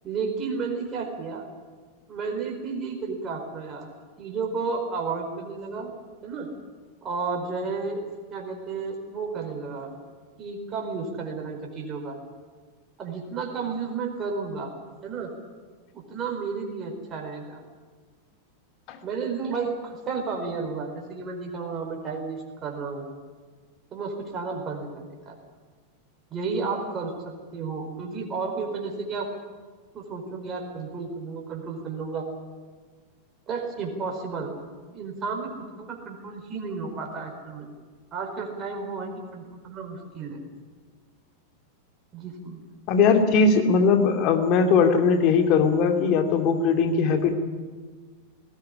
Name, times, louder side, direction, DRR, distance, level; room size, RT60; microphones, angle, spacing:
voice 1, 0.0-1.5 2.1-3.9 4.2-5.9 6.2-6.5 7.0-8.0 8.3-9.9 10.4-12.2 13.0-14.7 15.0-15.3 16.1-17.6 19.0-23.0 23.9-25.3 26.3-27.1 27.5-29.3 29.9-32.3 33.5-34.5 34.9-35.5 35.8-37.7 38.1-40.4 42.1-42.6, right 4 dB, 25° right, 2 dB, 4.6 m, -32 dB
voice 2, 42.9-47.3, left 5 dB, 40° left, 6 dB, 2.6 m, -20 dB
20.0 x 17.5 x 9.9 m, 1.5 s
figure-of-eight pair, 90°, 0 cm